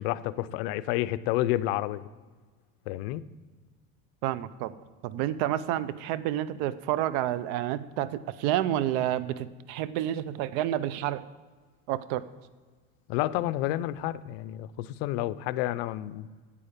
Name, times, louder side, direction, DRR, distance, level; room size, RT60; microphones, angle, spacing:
voice 1, 0.0-2.1 2.9-3.2 13.1-16.3, left 15 dB, 75° left, 15 dB, 0.5 m, -30 dB
voice 2, 4.2-4.7 5.0-11.2 11.9-12.2, right 12 dB, 70° right, 16 dB, 0.6 m, -29 dB
8.9 x 8.5 x 5.1 m, 1.4 s
supercardioid pair, 125°, 30 cm